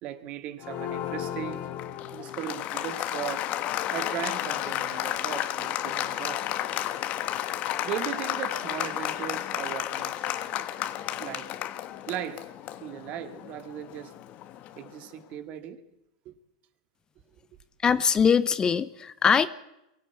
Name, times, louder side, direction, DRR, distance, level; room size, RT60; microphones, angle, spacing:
voice 1, 0.0-1.7 2.1-3.5 3.9-6.4 7.8-10.4 11.2-11.5 12.1-12.4 12.8-14.1 14.8-15.8 16.3-16.4, right 10 dB, 40° right, 2.1 m, -37 dB
Applause, 0.6-15.0, left 12 dB, 40° left, 1.4 m, -32 dB
voice 2, 17.8-19.5, left 6 dB, 20° left, 0.8 m, -22 dB
23.5 x 16.5 x 8.4 m
hypercardioid pair, 125°, 4 cm